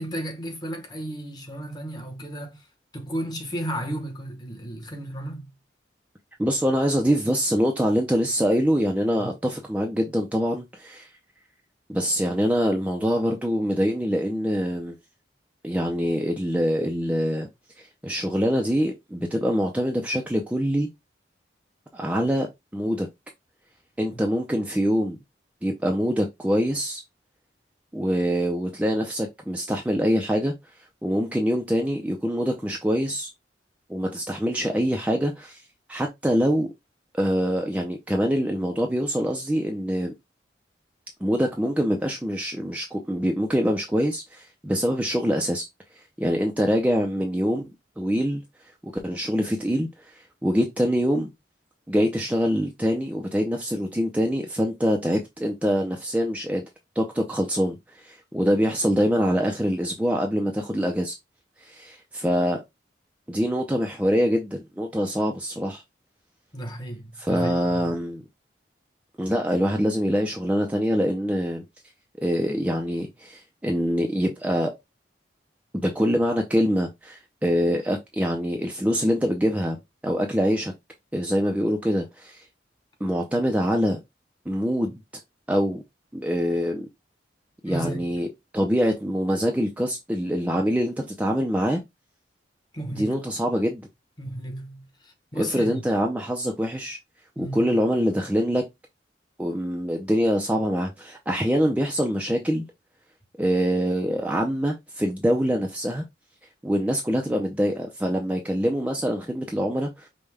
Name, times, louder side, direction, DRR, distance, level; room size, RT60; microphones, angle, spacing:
voice 1, 0.0-2.7 2.9-5.5 9.2-9.3 24.1-24.2 66.5-67.8 87.7-88.0 92.7-93.2 94.2-95.8 97.4-97.8, right 1 dB, 25° left, 1.0 m, -34 dB
voice 2, 6.4-11.1 11.9-15.0 15.6-17.5 18.0-20.9 21.9-22.5 22.7-23.1 24.0-25.2 25.6-27.0 27.9-30.5 31.0-33.3 33.9-35.6 35.9-36.7 37.2-40.1 41.2-45.6 46.2-48.4 48.8-51.3 51.9-56.6 57.0-61.1 61.6-62.6 63.3-65.8 67.2-68.2 69.2-71.6 72.2-74.7 75.8-79.8 80.0-80.7 81.1-82.4 83.0-84.0 84.5-85.0 85.5-85.8 86.1-86.9 87.6-88.3 88.5-91.8 93.0-93.9 95.4-97.0 97.4-98.6 99.4-102.7 103.4-106.0 106.6-110.1, equal, 10° right, 0.5 m, -24 dB
5.3 x 2.2 x 3.3 m
head